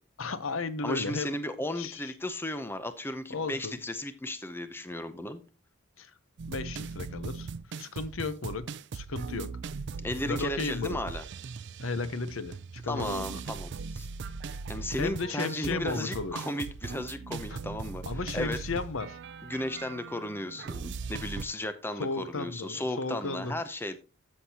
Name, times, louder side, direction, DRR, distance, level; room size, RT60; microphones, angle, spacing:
voice 1, 0.2-1.4 1.8-2.1 3.3-3.8 6.0-6.1 6.5-7.5 7.8-9.5 10.2-11.0 11.8-13.4 15.0-16.4 17.5-17.6 18.1-19.2 22.0-23.5, left 3 dB, 75° left, 0.8 m, -34 dB
voice 2, 0.8-5.4 10.0-11.2 12.9-14.1 14.4-18.0 18.3-18.6 19.4-24.0, left 1 dB, 10° left, 0.6 m, -35 dB
sound 1, 6.4-21.5, right 5 dB, 55° right, 0.4 m, -39 dB
13.5 x 6.5 x 2.8 m
head